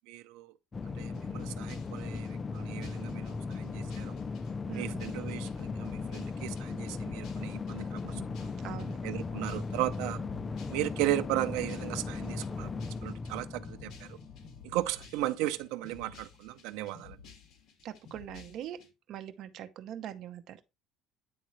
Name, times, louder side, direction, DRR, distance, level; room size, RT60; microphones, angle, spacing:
voice 1, 0.1-0.5 0.8-4.2 4.7-8.5 9.0-10.2 10.7-14.2 14.6-17.2, right 15 dB, 90° right, 0.5 m, -36 dB
sound 1, 0.7-15.1, left 4 dB, 25° left, 0.4 m, -37 dB
sound 2, 1.1-18.9, left 6 dB, 55° left, 2.1 m, -53 dB
voice 2, 4.7-5.1 8.0-8.3 8.6-9.0 17.8-18.8 19.1-20.6, right 10 dB, 60° right, 0.8 m, -42 dB
9.5 x 3.7 x 3.1 m
cardioid pair, 130°, 0 cm